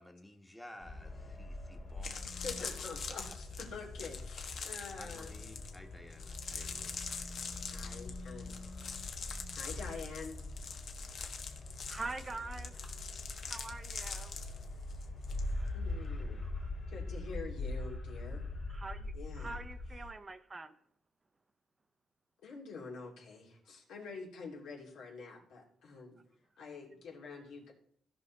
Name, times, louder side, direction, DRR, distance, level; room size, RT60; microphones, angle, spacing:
voice 1, 0.0-2.7 3.1-3.4 5.0-7.0, left 1 dB, 5° left, 4 dB, 1.4 m, -54 dB
sound 1, 0.8-20.1, left 2 dB, 40° left, 3.0 m, -43 dB
sound 2, 1.4-1.5 1.9-15.4 15.7-16.0, left 5 dB, 60° left, 1.2 m, -44 dB
voice 2, 2.3-5.3 7.7-8.5 9.5-10.4 15.7-16.5 16.9-18.4 19.1-19.6 22.4-26.2 26.6-27.7, left 4 dB, 80° left, -2 dB, 2.8 m, -46 dB
voice 3, 11.9-12.9 13.5-14.3 18.7-20.7, right 3 dB, 25° right, 10 dB, 0.7 m, -44 dB
16.5 x 5.6 x 4.0 m, 0.64 s
cardioid pair, 90°, 0 cm